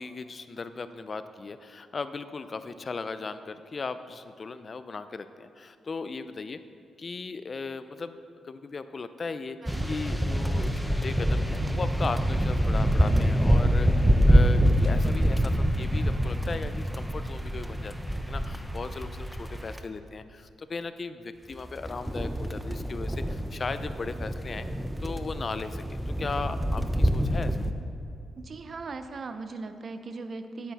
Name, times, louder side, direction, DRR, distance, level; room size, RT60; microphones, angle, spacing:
voice 1, 0.0-6.6 7.0-8.2 8.4-24.7 25.0-27.6, left 4 dB, 40° left, 11 dB, 0.5 m, -37 dB
sound 1, 9.7-19.8 21.5-27.7, equal, 5° right, 0.6 m, -26 dB
voice 2, 28.4-30.7, right 3 dB, 50° right, 9 dB, 0.6 m, -39 dB
9.5 x 9.4 x 4.1 m, 2.5 s
cardioid pair, 85°, 0 cm